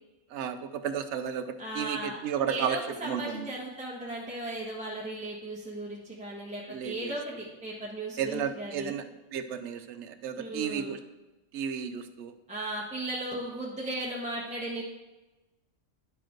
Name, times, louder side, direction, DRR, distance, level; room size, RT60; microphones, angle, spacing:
voice 1, 0.3-3.5 6.7-7.1 8.2-9.0 9.3-11.0 11.5-12.3, right 8 dB, 65° right, 9 dB, 0.9 m, -33 dB
voice 2, 1.6-2.2 2.5-9.0 10.4-10.9 12.5-14.8, right 1 dB, 5° right, -4 dB, 1.2 m, -36 dB
10.0 x 5.1 x 4.5 m, 1.1 s
omnidirectional pair, 1.3 m